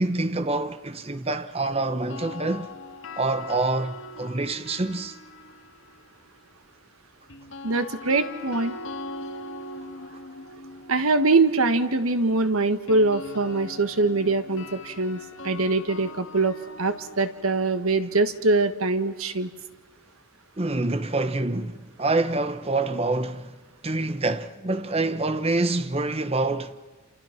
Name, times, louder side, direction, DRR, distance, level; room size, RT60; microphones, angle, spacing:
voice 1, 0.0-2.7 3.2-5.2 20.6-23.6 23.8-26.8, right 2 dB, 25° right, 1.0 m, -26 dB
sound 1, 1.9-6.1 7.3-19.2, left 2 dB, 60° left, 1.9 m, -41 dB
voice 2, 7.6-8.8 10.9-19.5, right 3 dB, 80° right, 1.6 m, -23 dB
28.5 x 28.0 x 6.0 m
head